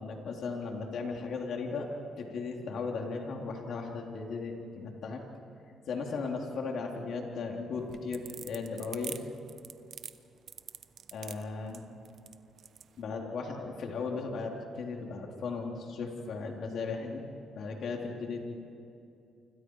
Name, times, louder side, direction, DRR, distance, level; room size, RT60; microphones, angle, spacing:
voice 1, 0.0-1.9 2.2-5.2 5.9-9.2 11.1-11.8 13.0-17.2 17.5-18.6, left 4 dB, 65° left, 1 dB, 3.6 m, -36 dB
sound 1, 7.8-12.9, right 8 dB, 60° right, 1.0 m, -44 dB
29.0 x 26.0 x 4.9 m, 2.7 s
cardioid pair, 90°, 0 cm